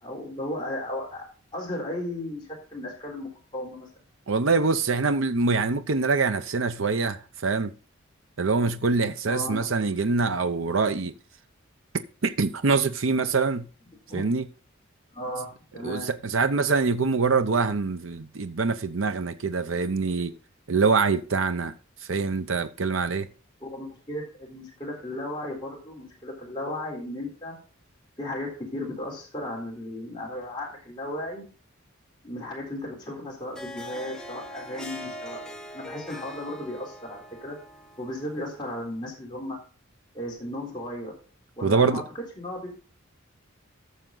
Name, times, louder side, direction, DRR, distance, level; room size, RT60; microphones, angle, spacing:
voice 1, 0.0-1.2 1.5-3.9 9.2-9.7 14.1-14.3 15.1-16.1 23.6-27.6 28.2-31.4 32.2-35.4 35.7-37.6 38.0-39.6 40.1-41.1 41.6-42.0 42.4-42.8, left 1 dB, 20° left, 3.7 m, -35 dB
voice 2, 4.3-7.7 8.4-11.1 12.2-13.7 14.1-14.5 15.8-20.3 20.7-21.7 22.1-23.3 41.6-42.0, right 4 dB, 70° right, 0.7 m, -24 dB
Harp, 33.4-38.8, equal, 5° left, 1.1 m, -42 dB
13.5 x 6.5 x 3.9 m
head